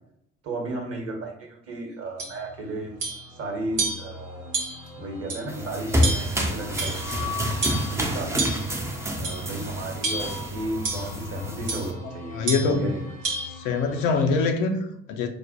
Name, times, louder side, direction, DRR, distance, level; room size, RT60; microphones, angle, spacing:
voice 1, 0.4-2.9 3.3-4.5 5.0-7.4 7.9-8.5 9.1-13.0, right 1 dB, 40° right, 2 dB, 1.0 m, -34 dB
sound 1, 2.2-14.5, left 3 dB, 90° left, 1.4 m, -41 dB
sound 2, 2.2-2.4 3.0-3.3 3.8-4.1 4.5-4.9 5.3-5.4 6.0-6.4 6.8-7.2 7.6-7.9 8.4-8.7 9.2-9.5 10.0-10.4 10.8-11.1 11.7-11.9 12.5-12.8 13.2-13.5, right 3 dB, 85° right, 0.5 m, -29 dB
sound 3, 5.5-11.9, equal, 10° right, 0.5 m, -28 dB
voice 2, 12.3-12.9 13.5-15.3, left 4 dB, 55° left, 5 dB, 0.5 m, -24 dB
4.7 x 2.1 x 2.6 m, 0.76 s
figure-of-eight pair, 50°, 38 cm